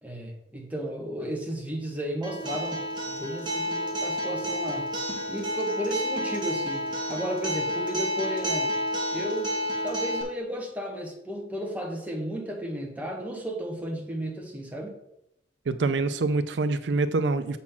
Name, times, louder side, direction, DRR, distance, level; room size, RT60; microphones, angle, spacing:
voice 1, 0.0-8.7 9.1-9.6 9.8-14.9, equal, 10° right, 0 dB, 1.4 m, -34 dB
Acoustic guitar, 2.2-10.2, equal, 25° right, 1.6 m, -30 dB
voice 2, 15.7-17.6, right 3 dB, 85° right, 12 dB, 0.5 m, -25 dB
7.2 x 4.2 x 5.7 m, 0.81 s
head